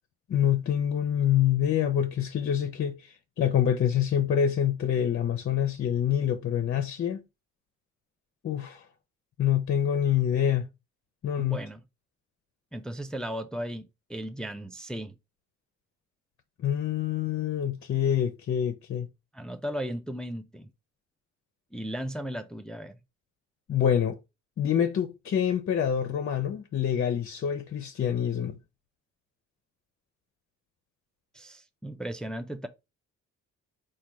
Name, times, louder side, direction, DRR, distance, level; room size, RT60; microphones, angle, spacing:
voice 1, 0.3-7.2 8.4-8.8 9.4-10.7 11.2-11.6 16.6-19.1 23.7-24.2 24.6-28.6, left 9 dB, 45° left, 0.6 m, -26 dB
voice 2, 11.4-11.8 12.7-15.2 19.3-20.7 21.7-23.0 31.3-32.7, equal, 5° left, 0.4 m, -36 dB
4.2 x 2.3 x 4.7 m
cardioid pair, 105°, 30 cm